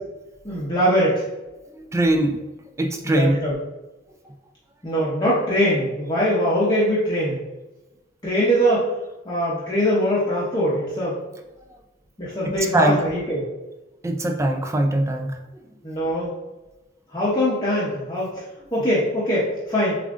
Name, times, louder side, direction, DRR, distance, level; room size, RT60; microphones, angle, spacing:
voice 1, 0.4-1.2 3.0-3.6 4.8-7.4 8.2-8.9 9.2-11.2 12.2-13.4 15.8-16.3 17.1-18.4 18.7-20.0, equal, 20° left, -8 dB, 0.7 m, -22 dB
voice 2, 1.7-2.4 2.8-3.4 12.4-13.0 14.0-15.4, right 1 dB, 15° right, 4 dB, 0.3 m, -21 dB
6.9 x 2.5 x 2.5 m, 1.1 s
head